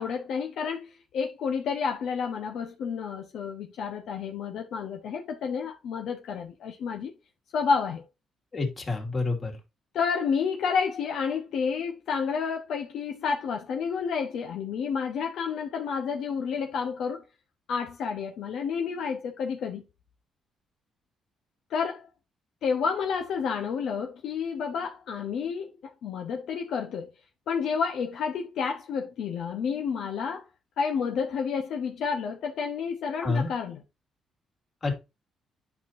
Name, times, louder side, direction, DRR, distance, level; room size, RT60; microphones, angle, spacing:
voice 1, 0.0-7.1 7.5-8.0 9.9-17.2 17.7-19.8 21.7-22.1 22.6-27.1 27.5-30.5 30.8-33.8, left 6 dB, 75° left, 1.0 m, -30 dB
voice 2, 8.5-9.6 33.2-33.5 34.8-35.0, left 3 dB, 40° left, 2.6 m, -28 dB
9.2 x 5.7 x 2.7 m
cardioid pair, 90°, 0 cm